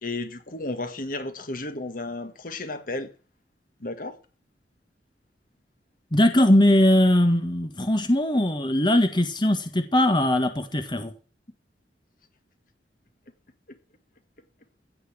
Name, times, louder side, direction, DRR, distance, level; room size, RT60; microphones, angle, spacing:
voice 1, 0.0-3.1 3.8-4.1, left 2 dB, 50° left, 1.6 m, -33 dB
voice 2, 6.1-11.1, left 1 dB, 25° left, 1.5 m, -20 dB
16.0 x 5.6 x 8.7 m
head